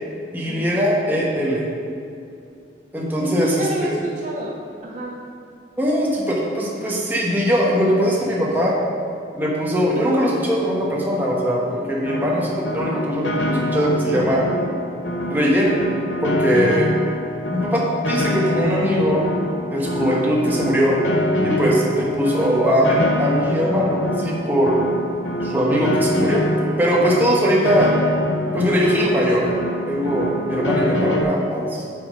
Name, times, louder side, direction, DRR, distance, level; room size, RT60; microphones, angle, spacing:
voice 1, 0.3-1.6 2.9-4.0 5.8-8.7 9.3-14.4 15.2-15.7 16.2-16.9 17.5-19.3 19.7-21.0 21.4-24.8 25.4-26.4 26.8-27.9 28.5-29.4 29.9-31.8, equal, 10° right, -4 dB, 1.1 m, -20 dB
voice 2, 3.2-5.2 11.6-12.0 21.4-21.7 30.0-30.3, right 1 dB, 40° right, -1 dB, 0.5 m, -30 dB
Piano, 12.0-31.2, left 1 dB, 75° left, 0.7 m, -25 dB
8.5 x 4.3 x 5.0 m, 2.6 s
head